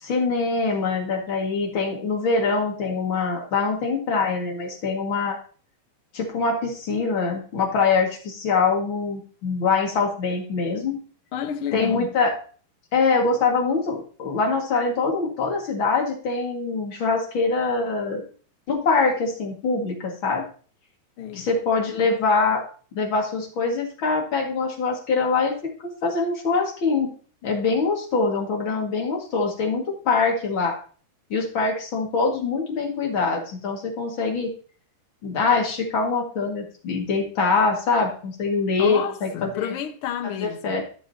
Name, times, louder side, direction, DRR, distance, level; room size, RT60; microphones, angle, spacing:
voice 1, 0.0-5.4 6.1-11.0 11.7-12.3 12.9-18.2 18.7-20.5 21.4-22.6 22.9-27.1 27.4-30.8 31.3-34.5 35.2-39.7 40.4-40.8, left 4 dB, 40° left, 2.3 m, -24 dB
voice 2, 11.3-12.1 21.2-21.5 38.8-40.8, left 9 dB, 70° left, 1.3 m, -30 dB
15.5 x 6.8 x 2.8 m
omnidirectional pair, 4.1 m